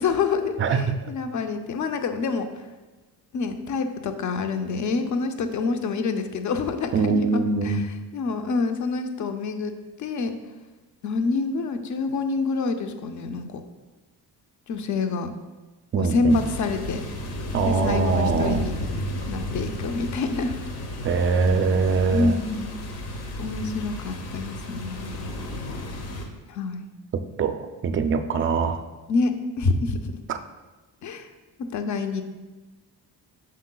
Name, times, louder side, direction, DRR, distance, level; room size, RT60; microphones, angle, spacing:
voice 1, 0.0-2.5 3.3-7.8 8.1-9.7 10.0-10.3 11.0-13.6 14.7-15.3 16.0-17.0 17.6-18.7 19.3-20.5 22.1-22.7 23.4-25.4 26.5-26.9 29.1-29.3 29.6-30.0 31.0-31.3 31.6-32.2, left 4 dB, 45° left, 7 dB, 0.6 m, -27 dB
voice 2, 0.6-0.9 6.9-7.8 15.9-16.4 17.5-18.7 21.0-22.4 27.4-28.8 30.3-30.4, right 5 dB, 30° right, 9 dB, 0.4 m, -23 dB
sound 1, 16.3-26.2, left 1 dB, 65° left, 1.1 m, -33 dB
7.7 x 6.4 x 2.3 m, 1.2 s
cardioid pair, 145°, 41 cm